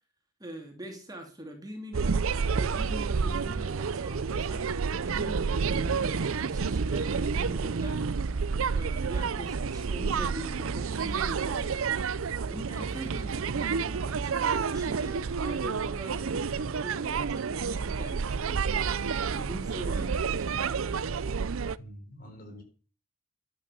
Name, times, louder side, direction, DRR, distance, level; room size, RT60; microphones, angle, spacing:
voice 1, 0.4-2.2 2.6-8.3 8.7-12.0 12.5-18.7 19.3-20.7, right 1 dB, 20° right, 3 dB, 2.6 m, -43 dB
sound 1, 1.9-21.8, right 5 dB, 80° right, 0.6 m, -29 dB
voice 2, 21.8-22.6, equal, 45° left, 5 dB, 4.5 m, -46 dB
11.5 x 9.2 x 6.9 m, 0.38 s
head